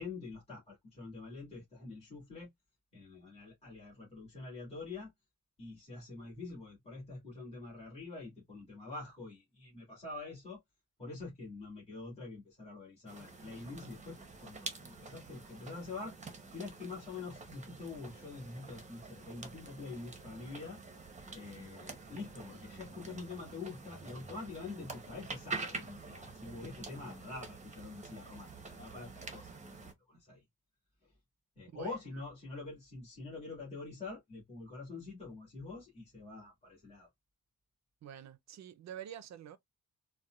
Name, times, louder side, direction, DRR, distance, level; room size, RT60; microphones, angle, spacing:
voice 1, 0.0-2.5 2.9-5.1 5.6-10.6 11.0-20.8 21.3-30.4 31.0-31.1 31.6-37.1, left 3 dB, 20° left, 1.9 m, -46 dB
sound 1, 13.1-29.9, right 3 dB, 20° right, 0.8 m, -47 dB
voice 2, 31.7-32.2 38.0-39.6, right 10 dB, 50° right, 0.5 m, -47 dB
4.1 x 2.2 x 2.3 m
cardioid pair, 140°, 34 cm